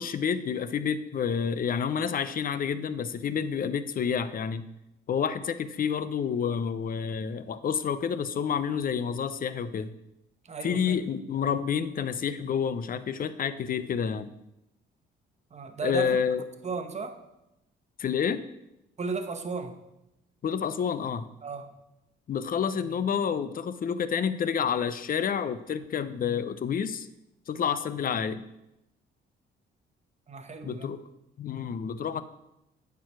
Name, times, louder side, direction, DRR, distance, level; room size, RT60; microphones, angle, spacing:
voice 1, 0.0-4.7 5.1-9.9 10.6-14.3 15.8-16.4 18.0-18.4 20.4-21.3 22.3-27.1 27.5-28.5 30.6-31.0 31.4-32.2, left 7 dB, 45° left, 14 dB, 0.6 m, -29 dB
voice 2, 10.4-11.0 15.5-16.2 16.6-17.2 19.0-19.8 21.4-21.7 30.3-30.9, right 4 dB, 35° right, 8 dB, 1.0 m, -35 dB
9.1 x 4.8 x 6.0 m, 0.89 s
cardioid pair, 90°, 20 cm